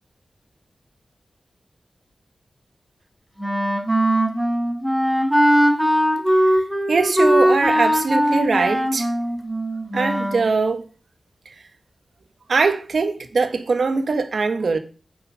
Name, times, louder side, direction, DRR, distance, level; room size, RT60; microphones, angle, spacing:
Wind instrument woodwind instrument, 3.4-10.5, equal, 5° right, 4.1 m, -20 dB
voice 1, 6.3-9.1 9.9-10.8 11.5-11.6 12.5-14.8, right 4 dB, 70° right, 1.7 m, -22 dB
9.6 x 7.2 x 6.5 m
cardioid pair, 45°, 0 cm